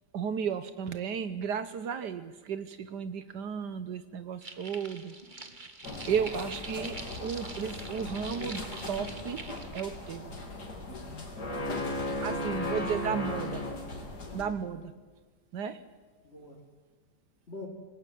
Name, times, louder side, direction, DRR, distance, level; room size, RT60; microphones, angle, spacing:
voice 1, 0.1-5.1 6.1-9.4 9.7-10.3 12.2-13.6 14.3-14.9 15.5-15.8, right 7 dB, 75° right, 12 dB, 1.6 m, -34 dB
sound 1, 4.4-9.8, right 3 dB, 25° right, 1.9 m, -45 dB
sound 2, 5.8-14.4, left 1 dB, 65° left, 3.8 m, -37 dB
voice 2, 5.9-6.3 12.1-12.8 14.4-14.7 16.2-16.6 17.5-17.7, left 2 dB, 35° left, -2 dB, 3.5 m, -46 dB
28.0 x 19.0 x 9.4 m, 1.4 s
omnidirectional pair, 1.8 m